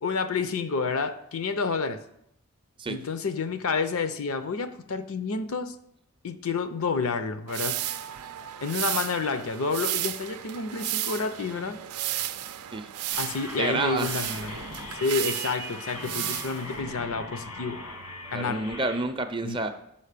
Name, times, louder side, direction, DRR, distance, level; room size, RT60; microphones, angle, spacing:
voice 1, 0.0-2.0 2.9-5.7 6.2-7.8 8.6-11.8 13.2-14.6 15.0-17.8 18.3-18.6 19.4-19.6, left 4 dB, 70° left, 0.6 m, -29 dB
sound 1, 7.5-16.8, right 12 dB, 85° right, 0.5 m, -33 dB
sound 2, 13.1-19.0, left 2 dB, 90° left, 1.6 m, -40 dB
voice 2, 13.6-14.2 18.3-19.7, right 3 dB, 20° right, 0.5 m, -29 dB
5.7 x 5.4 x 6.6 m
head